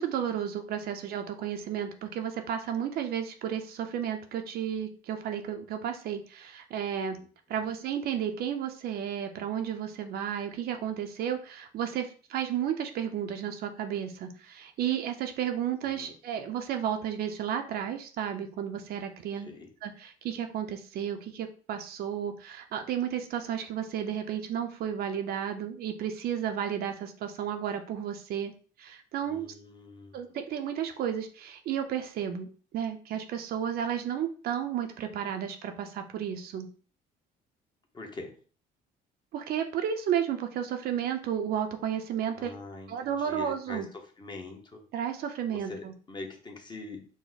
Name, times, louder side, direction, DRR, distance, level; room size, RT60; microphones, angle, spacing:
voice 1, 0.0-7.2 7.5-19.5 19.8-28.5 28.8-29.5 30.1-32.5 32.7-36.7 39.3-42.5 42.9-43.9 44.9-45.9, right 9 dB, 65° right, 6 dB, 0.6 m, -32 dB
voice 2, 15.8-16.1 19.4-19.7 29.2-30.4 37.9-38.3 42.3-44.8 45.3-47.1, left 2 dB, 25° left, 3 dB, 1.0 m, -44 dB
4.9 x 2.1 x 4.0 m, 0.40 s
cardioid pair, 110°, 17 cm